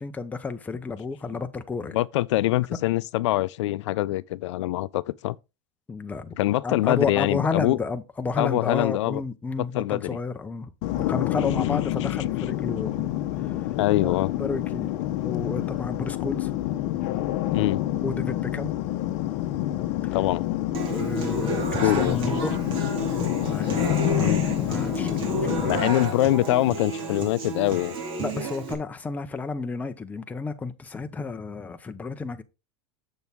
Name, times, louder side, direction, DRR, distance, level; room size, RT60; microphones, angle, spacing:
voice 1, 0.0-2.0 5.9-13.7 14.0-14.9 15.2-16.5 18.0-18.7 20.0-20.2 20.9-22.5 23.4-25.9 28.2-32.4, left 4 dB, 10° left, 0.6 m, -31 dB
voice 2, 1.9-5.4 6.4-7.8 8.4-9.2 9.7-10.2 11.6-11.8 13.8-14.3 17.5-17.8 20.1-20.5 21.8-22.2 24.2-24.4 25.6-27.9, left 16 dB, 85° left, 0.4 m, -24 dB
sound 1, 10.8-25.8, left 14 dB, 50° left, 0.8 m, -27 dB
Human voice / Acoustic guitar, 20.7-28.7, right 3 dB, 35° right, 2.3 m, -31 dB
7.1 x 6.2 x 3.5 m
supercardioid pair, 150°, 15 cm